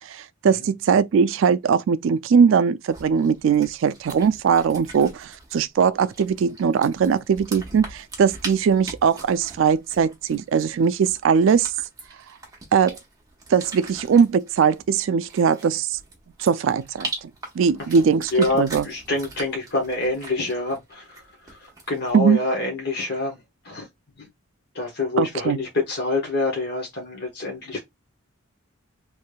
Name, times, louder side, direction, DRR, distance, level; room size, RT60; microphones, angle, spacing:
voice 1, 0.1-11.7 12.7-13.0 13.5-16.0 16.4-17.1 17.6-18.9 22.1-22.4 25.2-25.6, right 6 dB, 65° right, 0.3 m, -20 dB
sound 1, 2.9-22.1, right 2 dB, 15° right, 0.9 m, -41 dB
voice 2, 17.8-23.4 23.6-23.9 24.2-24.3 24.7-27.8, left 2 dB, 50° left, 1.1 m, -27 dB
3.3 x 3.1 x 2.2 m
head